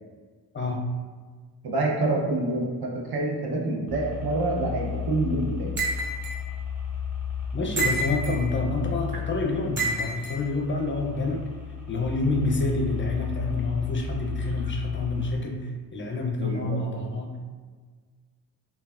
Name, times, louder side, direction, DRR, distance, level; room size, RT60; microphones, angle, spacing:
voice 1, 0.5-0.8 7.5-11.4 11.9-17.4, left 2 dB, 30° left, 1 dB, 0.5 m, -28 dB
voice 2, 1.6-5.7 16.4-16.9, right 2 dB, 60° right, -1 dB, 0.7 m, -27 dB
sound 1, 3.9-15.3, left 7 dB, 5° right, 1.0 m, -34 dB
sound 2, 5.8-6.4 7.8-8.4 9.8-10.3, right 2 dB, 25° right, 0.7 m, -28 dB
3.1 x 2.3 x 2.4 m, 1.5 s
cardioid pair, 55°, 43 cm